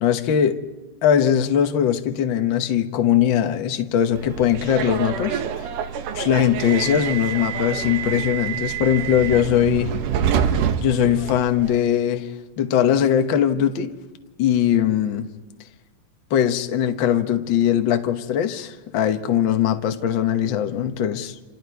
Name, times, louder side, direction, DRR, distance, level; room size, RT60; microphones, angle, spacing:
voice 1, 0.0-0.6 1.0-5.4 6.1-9.9 10.8-12.3 12.6-13.9 14.4-15.3 16.3-21.3, left 9 dB, 70° left, 1.1 m, -20 dB
Subway metro underground, 4.2-11.8, right 8 dB, 80° right, 2.6 m, -26 dB
28.5 x 26.5 x 4.7 m
omnidirectional pair, 3.7 m